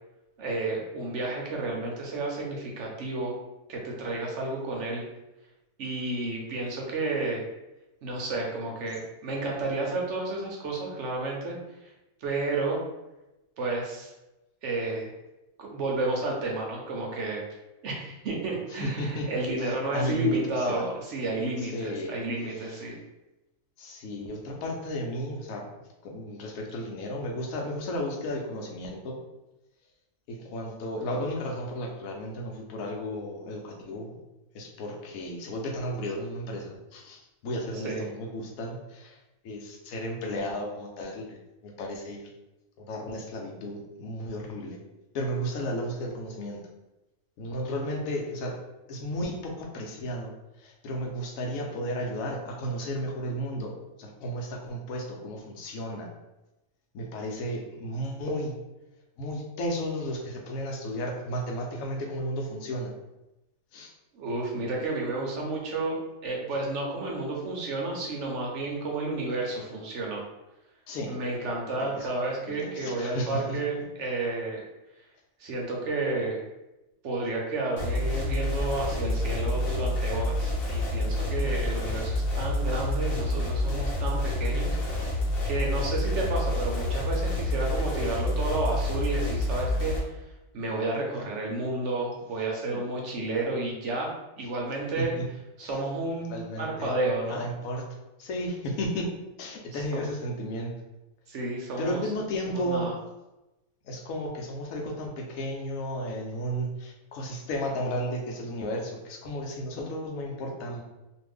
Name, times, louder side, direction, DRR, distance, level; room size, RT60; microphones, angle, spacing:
voice 1, 0.4-3.3 3.7-5.0 5.8-7.4 8.0-11.6 11.8-11.9 12.2-12.8 13.6-14.1 14.6-15.1 15.6-17.4 17.8-23.0 37.8-38.0 64.1-66.0 66.2-70.2 71.1-74.6 75.4-76.4 77.0-85.1 85.5-90.2 90.5-95.1 95.6-97.4 99.7-100.1 101.3-102.0 102.5-102.9, right 2 dB, 60° right, -1 dB, 0.9 m, -31 dB
voice 2, 18.7-19.3 19.6-20.9 21.6-22.2 22.5-22.8 23.8-25.7 26.0-29.2 30.3-34.1 34.5-39.2 39.4-41.4 41.6-42.3 42.8-44.8 45.1-46.6 47.4-48.6 48.9-50.3 50.6-53.7 54.0-56.1 56.9-58.5 59.2-62.9 63.7-63.9 70.9-71.1 71.8-72.1 72.5-73.6 92.7-92.9 95.0-95.2 95.6-95.8 96.3-97.0 97.2-97.8 98.2-99.1 99.4-100.7 101.8-102.9 103.8-110.8, equal, 70° left, 0 dB, 1.0 m, -33 dB
sound 1, 77.8-90.0, left 1 dB, 50° left, 0.8 m, -28 dB
2.5 x 2.5 x 3.4 m, 0.97 s
omnidirectional pair, 1.5 m